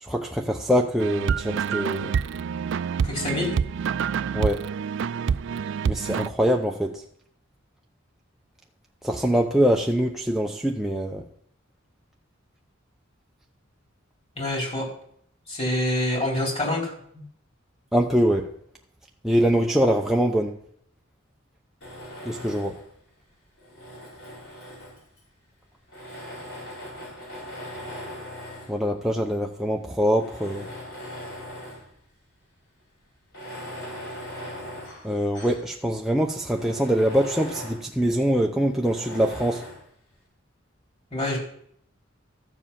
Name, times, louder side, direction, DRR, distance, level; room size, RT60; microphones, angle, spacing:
voice 1, 0.0-2.1 4.3-4.6 5.8-7.0 9.0-11.2 17.9-18.5 19.2-20.5 22.2-22.8 28.7-30.7 35.0-39.6, equal, ahead, 0 dB, 0.7 m, -23 dB
sound 1, 1.0-6.3, right 7 dB, 65° right, 0.4 m, -27 dB
voice 2, 3.0-3.5 14.4-14.9 15.5-16.9 41.1-41.4, left 1 dB, 30° left, -2 dB, 4.3 m, -26 dB
Tools, 21.8-22.9 23.6-25.2 25.9-28.8 29.5-29.6 30.1-31.9 32.3-32.4 33.2-35.7 36.1-36.2 36.5-37.9 38.8-39.9, equal, 65° left, 5.1 m, -39 dB
13.5 x 7.4 x 5.7 m, 0.65 s
head